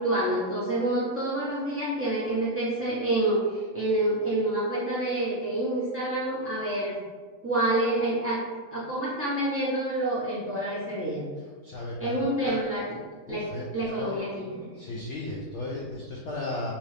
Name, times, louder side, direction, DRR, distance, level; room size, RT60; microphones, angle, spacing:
voice 1, 0.0-7.0 7.4-8.4 8.7-11.2 12.0-13.0 13.3-13.5 13.7-14.5, right 1 dB, 10° right, -8 dB, 0.9 m, -27 dB
voice 2, 11.4-12.7 13.3-14.2 14.7-16.7, left 2 dB, 70° left, -3 dB, 0.7 m, -36 dB
5.4 x 2.5 x 3.3 m, 1.5 s
omnidirectional pair, 1.9 m